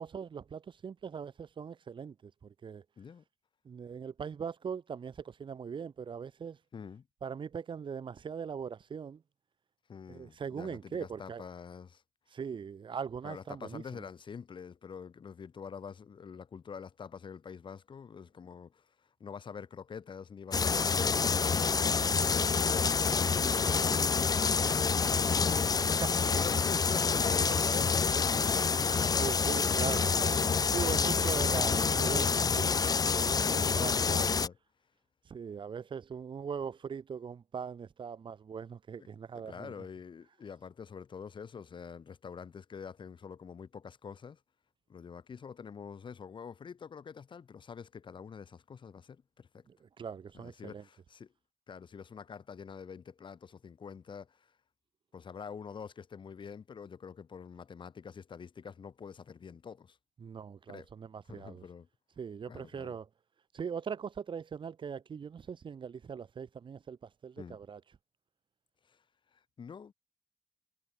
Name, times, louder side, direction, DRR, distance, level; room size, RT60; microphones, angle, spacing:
voice 1, 0.0-2.8 3.6-6.6 7.2-9.2 10.1-11.4 12.3-14.0 25.5-26.2 26.5-26.6 27.5-27.6 29.1-32.9 33.3-34.3 35.2-39.7 49.7-50.8 60.2-61.6 62.2-63.1 63.5-67.8, right 6 dB, 90° right, 6.5 m, -41 dB
voice 2, 6.7-7.1 9.9-12.0 13.2-26.0 26.3-29.6 33.4-34.6 39.0-39.1 39.3-44.4 44.9-49.6 50.3-51.3 51.7-54.5 55.1-60.0 60.7-60.9 61.3-61.9 62.5-63.0 67.4-67.6 68.9-69.0 69.3-69.9, left 6 dB, 80° left, 6.4 m, -46 dB
sound 1, 20.5-34.5, left 5 dB, 50° left, 0.7 m, -27 dB
wide cardioid pair, 100°, 8 cm